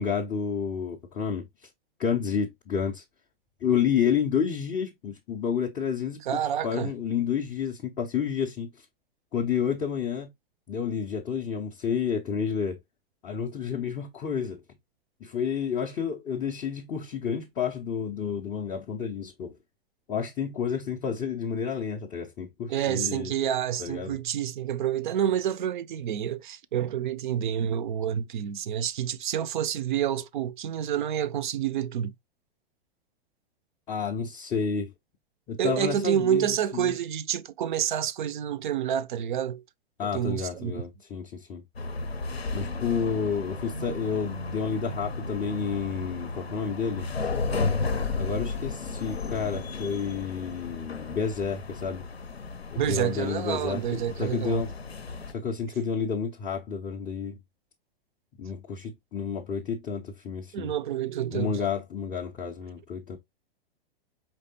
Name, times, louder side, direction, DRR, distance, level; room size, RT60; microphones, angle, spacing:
voice 1, 0.0-1.5 2.0-3.0 3.6-8.7 9.3-10.3 10.7-12.8 13.2-14.6 15.2-19.5 20.1-23.3 23.8-24.2 33.9-34.9 35.5-36.5 36.7-37.0 40.0-41.6 42.5-47.3 48.2-52.0 52.7-54.7 55.3-57.4 58.4-60.7 61.3-63.2, left 6 dB, 15° left, 0.3 m, -30 dB
voice 2, 6.2-6.9 22.7-32.1 35.6-39.6 40.1-40.8 52.8-54.6 60.5-61.6, right 10 dB, 55° right, 0.4 m, -28 dB
sound 1, 41.8-55.3, left 3 dB, 90° left, 0.6 m, -34 dB
4.5 x 3.2 x 2.6 m
figure-of-eight pair, 105°, 30 cm